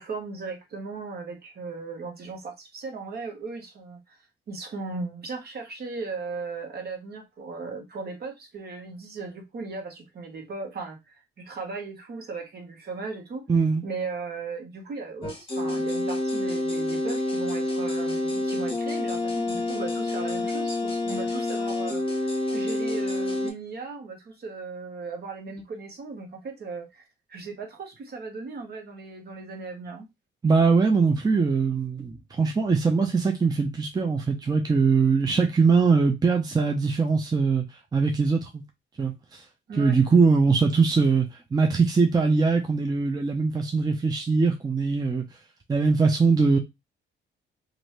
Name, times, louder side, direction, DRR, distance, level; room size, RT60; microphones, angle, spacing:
voice 1, 0.0-4.2 4.5-13.5 13.8-30.1 39.7-40.0, right 4 dB, 55° right, 1.2 m, -37 dB
voice 2, 13.5-13.8 30.4-37.6 37.9-38.6 39.0-39.4 39.8-45.2 45.7-46.6, right 4 dB, 20° right, 0.5 m, -22 dB
sound 1, 15.2-23.5, left 2 dB, 25° left, 1.1 m, -28 dB
2.7 x 2.6 x 3.2 m
cardioid pair, 90°, 20 cm